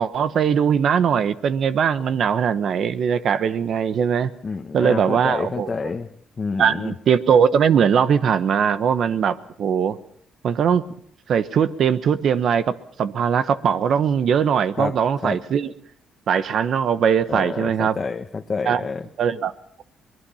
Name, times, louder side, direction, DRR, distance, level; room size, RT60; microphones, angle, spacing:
voice 1, 0.0-4.3 4.7-5.7 6.6-10.0 10.4-10.8 11.3-12.6 13.0-15.7 16.3-18.0 18.6-18.8 19.2-19.5, right 7 dB, 65° right, 14 dB, 1.1 m, -20 dB
voice 2, 4.4-6.1 6.4-6.9 14.8-15.0 15.2-15.4 17.3-19.1, left 4 dB, 35° left, 4 dB, 1.2 m, -28 dB
24.0 x 20.5 x 5.7 m, 0.64 s
cardioid pair, 90°, 0 cm